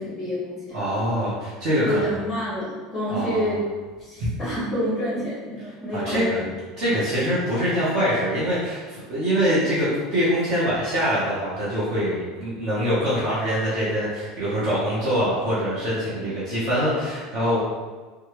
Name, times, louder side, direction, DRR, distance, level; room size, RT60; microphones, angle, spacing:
voice 1, 0.0-0.8 1.8-3.6 4.0-6.5 16.1-16.3, equal, 5° left, -9 dB, 1.4 m, -28 dB
voice 2, 0.7-2.0 3.1-3.5 4.2-4.3 5.9-6.5 6.8-17.6, equal, 35° right, -9 dB, 0.8 m, -24 dB
3.2 x 2.2 x 2.9 m, 1.4 s
cardioid pair, 175°, 0 cm